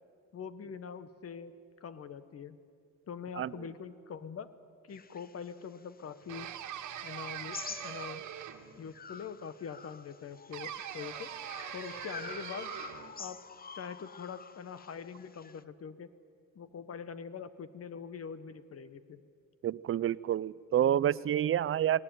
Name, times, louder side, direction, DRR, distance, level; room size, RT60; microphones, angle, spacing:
voice 1, 0.3-1.5 1.8-2.6 3.1-4.5 4.8-6.5 7.0-8.2 8.8-11.3 11.7-12.7 13.2-13.4 13.7-16.1 16.5-19.2, left 6 dB, 50° left, 13 dB, 1.3 m, -43 dB
sound 1, 4.9-8.5 8.9-15.6, left 6 dB, 30° left, 0.8 m, -48 dB
sound 2, 6.3-8.8 10.5-13.2, right 10 dB, 75° right, 1.6 m, -42 dB
voice 2, 19.6-22.0, right 10 dB, 45° right, 20 dB, 0.5 m, -28 dB
18.5 x 18.5 x 9.3 m, 2.3 s
cardioid pair, 90°, 30 cm